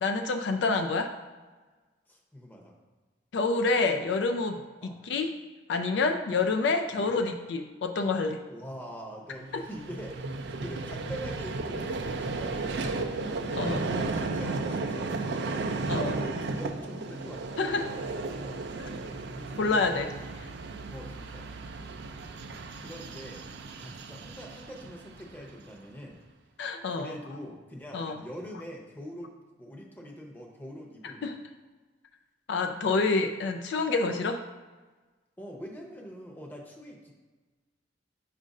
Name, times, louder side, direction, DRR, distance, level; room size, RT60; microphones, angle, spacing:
voice 1, 0.0-1.1 3.3-4.6 4.8-5.3 5.7-8.4 9.5-9.6 13.5-13.8 15.9-16.2 17.6-17.9 19.6-20.5 26.6-27.2 27.9-28.2 31.2-31.4 32.5-34.4, left 3 dB, 65° left, 5 dB, 0.4 m, -28 dB
voice 2, 2.1-2.7 4.8-5.0 6.9-7.2 8.5-12.9 13.2-15.7 16.0-17.7 18.3-20.1 20.9-21.5 22.8-26.2 26.9-31.3 35.4-37.1, equal, 10° left, 0 dB, 0.8 m, -44 dB
Vehicle, 9.4-25.8, right 3 dB, 60° right, 0.4 m, -34 dB
7.4 x 2.5 x 5.2 m, 1.3 s
head